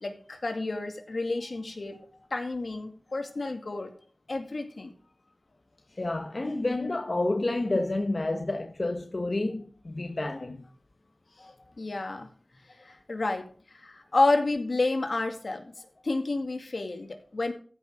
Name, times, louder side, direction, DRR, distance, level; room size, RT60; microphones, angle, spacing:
voice 1, 0.0-3.9 4.3-4.9 11.4-12.3 12.8-13.4 13.7-17.5, left 2 dB, 75° left, 2.1 m, -30 dB
voice 2, 5.9-10.7, left 2 dB, 55° left, 1.1 m, -29 dB
15.0 x 6.2 x 5.0 m
wide cardioid pair, 45°, 0 cm